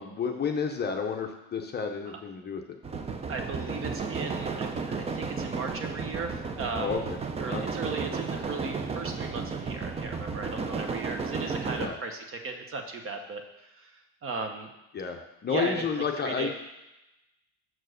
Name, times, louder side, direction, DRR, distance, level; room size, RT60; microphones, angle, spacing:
voice 1, 0.0-2.8 6.8-7.0 7.5-7.6 11.8-12.0 14.9-16.5, left 6 dB, 30° left, 3 dB, 0.6 m, -31 dB
sound 1, 2.8-11.9, right 4 dB, 20° right, 0.4 m, -33 dB
voice 2, 3.3-7.0 7.4-14.7 15.5-15.8 16.2-16.5, right 4 dB, 35° right, 5 dB, 1.0 m, -37 dB
6.2 x 4.5 x 6.4 m, 0.94 s
cardioid pair, 135°, 36 cm